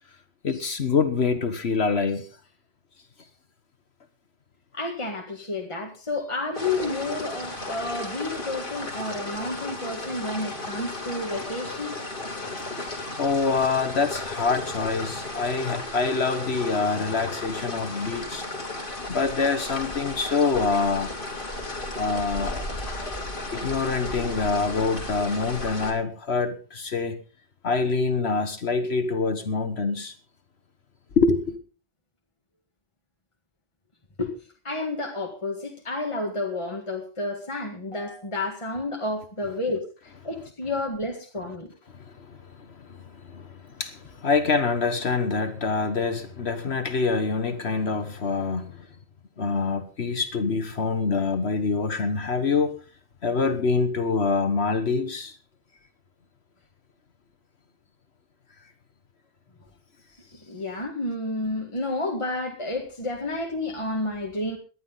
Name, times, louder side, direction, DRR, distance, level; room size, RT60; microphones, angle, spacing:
voice 1, 0.4-2.3 12.2-18.4 19.1-21.1 22.0-23.1 23.5-27.2 27.6-30.1 31.2-31.6 41.9-48.9 49.4-52.7 53.2-55.4, left 4 dB, 65° left, 1.4 m, -26 dB
voice 2, 4.7-12.0 34.2-34.3 34.6-41.7 60.5-64.6, left 2 dB, 25° left, 2.0 m, -30 dB
sound 1, 6.5-25.9, left 2 dB, 45° left, 3.2 m, -34 dB
19.0 x 11.5 x 4.0 m
omnidirectional pair, 1.2 m